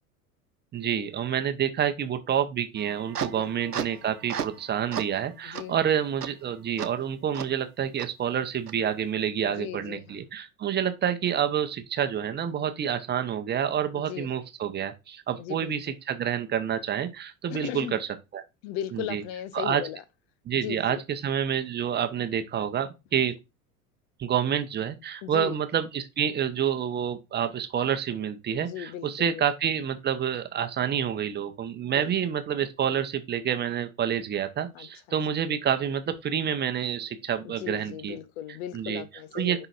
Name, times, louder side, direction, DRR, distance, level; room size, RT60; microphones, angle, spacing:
voice 1, 0.7-18.0 18.3-18.4 18.9-19.2 19.5-19.8 20.5-23.4 24.2-38.2 38.7-39.0 39.3-39.7, right 9 dB, 25° right, 0.9 m, -28 dB
sound 1, 2.8-4.6 4.9-5.2 5.6-5.7 6.2-6.3 6.8-6.9 7.3-7.5 8.0-8.1 8.7-8.8, right 8 dB, 90° right, 0.7 m, -34 dB
voice 2, 3.3-3.9 5.4-5.8 9.4-10.2 13.9-14.3 15.4-15.7 17.5-18.0 18.6-20.0 20.5-21.0 25.2-25.6 28.6-29.4 31.9-32.1 34.7-34.9 37.4-39.7, left 11 dB, 45° left, 0.7 m, -37 dB
10.0 x 3.9 x 2.5 m
figure-of-eight pair, 80°, 45 cm